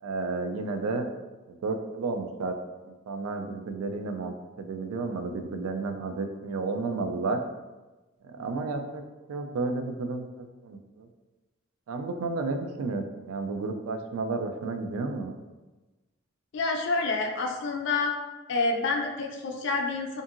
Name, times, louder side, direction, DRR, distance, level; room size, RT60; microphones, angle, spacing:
voice 1, 0.0-1.1 1.5-2.5 2.8-7.4 8.2-9.0 9.3-11.1 11.9-15.4, right 3 dB, 90° right, 6 dB, 0.3 m, -32 dB
voice 2, 16.5-18.1 18.5-20.2, left 3 dB, 60° left, 1 dB, 0.4 m, -28 dB
2.6 x 2.6 x 2.5 m, 1.2 s
head